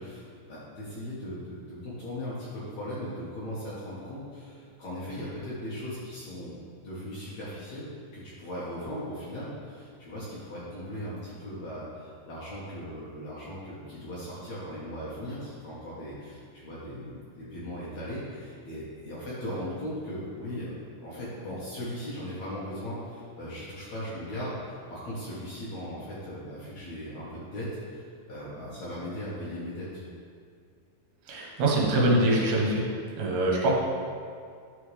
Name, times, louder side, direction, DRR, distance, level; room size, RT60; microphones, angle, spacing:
voice 1, 0.0-20.7 21.0-30.0, equal, 70° left, -8 dB, 1.7 m, -38 dB
voice 2, 31.3-32.9 33.2-33.7, right 1 dB, 75° right, -3 dB, 3.1 m, -24 dB
11.0 x 4.3 x 3.3 m, 2.2 s
omnidirectional pair, 5.0 m